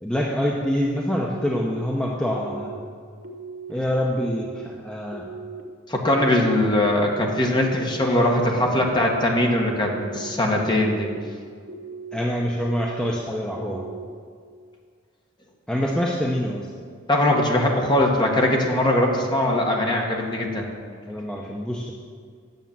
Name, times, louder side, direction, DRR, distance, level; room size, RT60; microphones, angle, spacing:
voice 1, 0.0-2.8 3.7-5.2 7.9-8.5 12.1-13.8 15.7-16.7 21.0-21.9, equal, 5° left, -2 dB, 0.7 m, -26 dB
sound 1, 1.4-1.9 2.3-2.8 3.2-3.7 4.2-4.7 5.1-5.6 6.1-6.5 7.0-7.5 7.9-8.4 8.9-9.4 9.8-10.3 10.8-11.2 11.7-12.2 12.6-13.1 13.6-14.1, right 4 dB, 85° right, 1.4 m, -38 dB
voice 2, 5.9-11.1 17.1-20.7, left 1 dB, 25° left, 0 dB, 1.5 m, -21 dB
9.5 x 7.1 x 7.4 m, 2.1 s
head